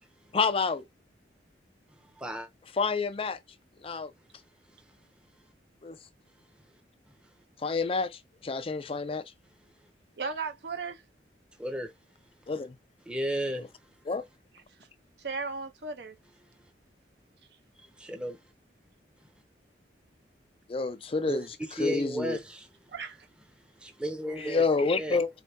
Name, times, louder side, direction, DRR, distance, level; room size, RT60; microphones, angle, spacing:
voice 1, 0.3-0.8 2.8-3.4 3.8-4.1 5.8-6.0 7.6-9.2 12.5-12.8 14.1-14.2 20.7-21.5 21.8-22.4 24.4-25.3, left 4 dB, 30° left, 0.4 m, -28 dB
voice 2, 2.2-2.5 11.6-11.9 13.1-13.7 18.0-18.4 21.3-22.7 23.8-25.2, right 1 dB, 5° right, 0.7 m, -34 dB
voice 3, 10.2-11.0 15.2-16.2 22.9-23.3, right 4 dB, 65° right, 0.9 m, -35 dB
4.0 x 3.2 x 2.8 m
head